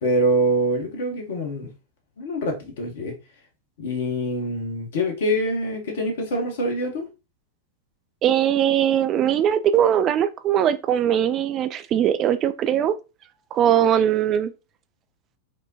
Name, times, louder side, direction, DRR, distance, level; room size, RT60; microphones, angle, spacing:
voice 1, 0.0-1.7 2.2-3.1 3.8-7.1, right 1 dB, 60° left, 1.1 m, -25 dB
voice 2, 8.2-12.9 13.5-14.5, right 10 dB, 30° right, 0.4 m, -20 dB
4.9 x 2.2 x 2.8 m
figure-of-eight pair, 90°, 0 cm